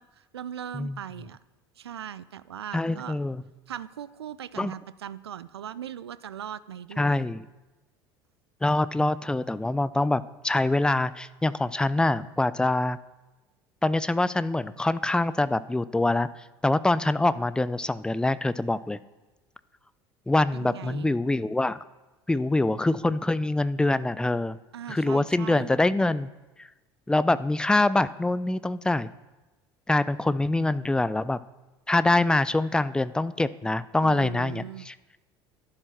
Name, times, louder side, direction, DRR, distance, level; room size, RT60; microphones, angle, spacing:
voice 1, 0.0-1.4 1.8-3.2 3.7-7.2 20.5-21.1 24.7-25.7 34.0-34.9, right 9 dB, 75° right, 16 dB, 0.5 m, -39 dB
voice 2, 2.7-3.4 4.6-4.7 7.0-7.5 8.6-13.0 13.8-16.3 16.6-19.0 20.3-21.8 22.3-24.6 24.9-26.3 26.6-26.7 27.1-29.1 29.9-31.4 31.9-34.9, left 2 dB, 5° left, 16 dB, 0.4 m, -24 dB
11.0 x 10.5 x 6.0 m, 1.1 s
figure-of-eight pair, 65°, 13 cm